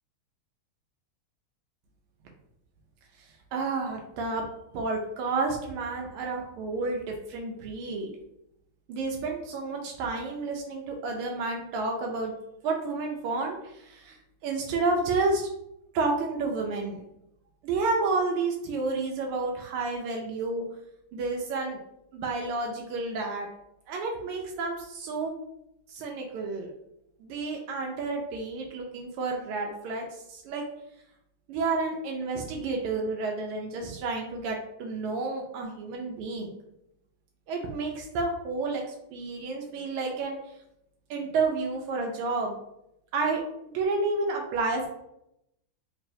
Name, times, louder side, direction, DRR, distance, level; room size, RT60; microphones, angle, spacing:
voice 1, 3.2-4.4 4.7-8.1 8.9-12.3 12.6-14.2 14.4-15.5 15.9-17.0 17.6-20.6 21.1-21.8 22.1-23.5 23.9-25.3 25.9-26.7 27.2-30.7 31.5-36.5 37.5-40.4 41.1-42.6 43.1-43.4 43.7-44.9, right 3 dB, 90° right, 0 dB, 1.5 m, -30 dB
3.6 x 3.0 x 2.6 m, 0.82 s
omnidirectional pair, 2.3 m